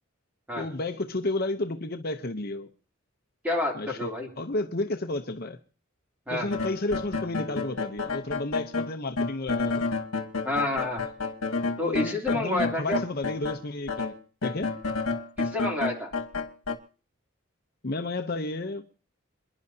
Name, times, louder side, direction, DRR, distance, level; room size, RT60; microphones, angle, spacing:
voice 1, 0.6-2.7 3.7-4.1 4.4-5.6 6.3-9.8 11.6-14.1 14.4-14.7 17.8-18.8, left 2 dB, 45° left, 0.8 m, -32 dB
voice 2, 3.4-4.3 6.3-6.5 10.4-11.0 11.8-13.0 15.4-16.1, left 1 dB, 5° right, 3.1 m, -29 dB
sound 1, 6.5-13.6 13.9-16.8, left 4 dB, 75° left, 1.5 m, -30 dB
27.5 x 11.0 x 2.8 m
head